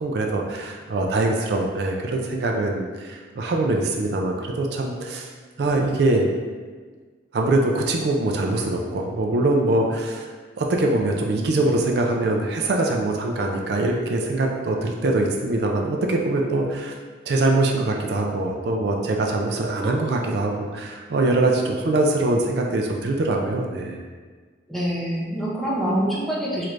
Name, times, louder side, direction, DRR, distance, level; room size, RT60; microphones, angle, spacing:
voice 1, 0.0-5.3 5.6-6.3 7.3-16.9 17.3-24.0, right 2 dB, 60° right, 1 dB, 0.3 m, -23 dB
voice 2, 24.7-26.7, right 1 dB, ahead, -6 dB, 0.5 m, -25 dB
3.2 x 2.5 x 3.2 m, 1.5 s
head